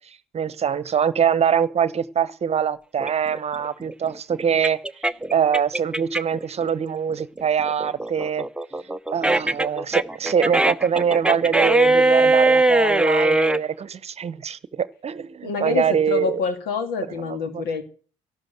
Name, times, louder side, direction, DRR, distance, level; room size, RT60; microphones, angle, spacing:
voice 1, 0.3-8.5 9.1-16.4 17.3-17.6, right 8 dB, 40° right, 1.0 m, -24 dB
sound 1, 3.0-6.4 6.8-13.6, right 2 dB, 5° right, 0.8 m, -20 dB
voice 2, 15.4-17.8, left 5 dB, 70° left, 2.4 m, -26 dB
13.5 x 12.0 x 7.7 m
hypercardioid pair, 55°, 16 cm